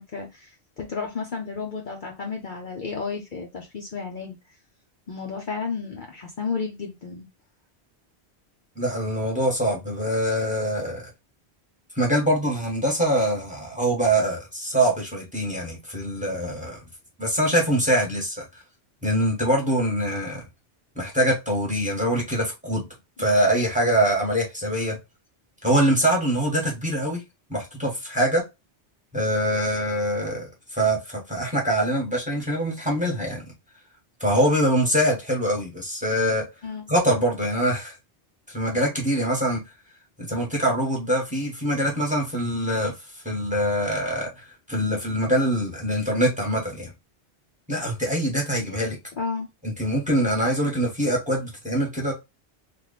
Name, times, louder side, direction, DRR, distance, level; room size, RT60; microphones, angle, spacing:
voice 1, 0.0-4.4 5.1-7.3 23.2-23.4 36.6-36.8 49.2-49.5, left 5 dB, 55° left, 0.8 m, -32 dB
voice 2, 8.8-11.1 11.9-16.8 17.2-18.5 19.0-20.4 20.9-22.8 23.2-25.0 25.6-27.2 27.5-28.4 29.1-33.4 34.2-36.4 36.9-38.0 38.5-39.6 40.2-46.9 47.7-49.0 49.6-52.1, right 1 dB, 5° right, 1.2 m, -24 dB
3.0 x 2.5 x 3.9 m
omnidirectional pair, 1.1 m